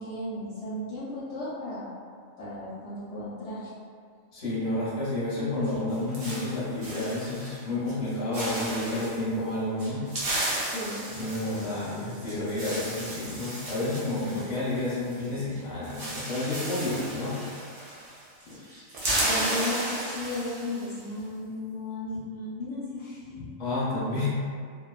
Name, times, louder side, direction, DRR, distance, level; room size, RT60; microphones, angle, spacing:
voice 1, 0.0-1.9 2.4-3.7 10.6-11.1 18.4-18.6 19.2-23.5, left 1 dB, 65° left, -10 dB, 0.8 m, -35 dB
voice 2, 4.3-10.0 11.1-17.3 23.6-24.3, left 2 dB, 35° left, -9 dB, 0.7 m, -30 dB
sound 1, 5.6-7.6 7.9-8.1 8.3-9.2 9.8-15.3 15.5-15.6 15.8-18.2 18.5-20.9, right 1 dB, 55° right, 0.7 m, -34 dB
2.5 x 2.2 x 2.3 m, 2.1 s
omnidirectional pair, 1.4 m